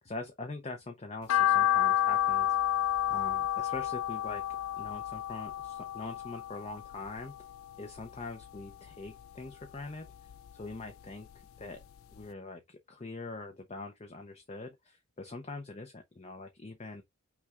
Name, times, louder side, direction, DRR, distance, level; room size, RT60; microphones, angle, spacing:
voice 1, 0.0-2.8 3.1-4.4 4.8-7.3 7.8-10.1 10.5-11.3 11.6-11.8 12.1-17.0, left 3 dB, 30° left, 0.6 m, -43 dB
sound 1, 1.3-7.6 8.0-9.1 9.5-10.9 11.3-11.4 11.8-11.9 12.2-12.3, left 11 dB, 75° left, 0.3 m, -30 dB
5.7 x 2.3 x 3.5 m
head